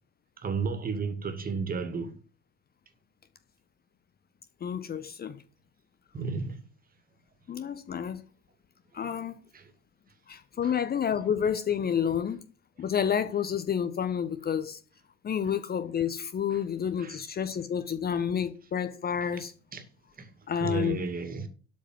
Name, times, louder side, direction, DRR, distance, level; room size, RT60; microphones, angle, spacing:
voice 1, 0.4-2.2 6.1-6.7 9.5-9.7 10.6-10.7 16.5-16.6 17.0-17.2 19.7-19.8 20.2-20.3 20.6-21.5, right 5 dB, 25° right, 2.4 m, -33 dB
voice 2, 4.6-5.4 7.5-8.2 8.9-9.4 10.3-12.4 12.8-14.8 15.2-19.5 20.5-21.0, left 8 dB, 30° left, 1.2 m, -29 dB
12.5 x 5.1 x 7.6 m
figure-of-eight pair, 65°, 32 cm